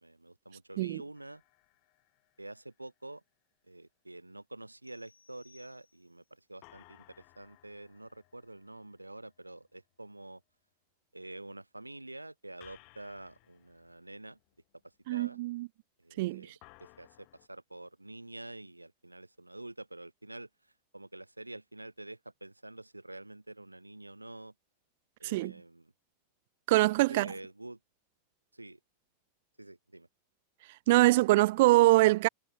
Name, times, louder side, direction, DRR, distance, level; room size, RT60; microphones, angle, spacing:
voice 1, 0.0-1.4 2.4-3.2 3.7-7.0 7.4-10.4 11.1-14.4 15.1-15.4 16.0-16.5 16.8-20.5 20.9-24.5 25.2-25.9 27.1-27.8 28.5-28.8 29.6-30.1, right 2 dB, 85° right, 3.1 m, -47 dB
sound 1, 1.1-2.9 6.6-9.9 12.6-14.8 16.6-17.5, left 38 dB, 45° left, 4.4 m, -61 dB
sound 2, 4.8-6.4, left 4 dB, 75° left, 6.2 m, -64 dB
voice 2, 15.1-15.7 16.2-16.5 25.2-25.5 26.7-27.3 30.9-32.3, right 19 dB, 50° right, 0.5 m, -24 dB
figure-of-eight pair, 90°, 0 cm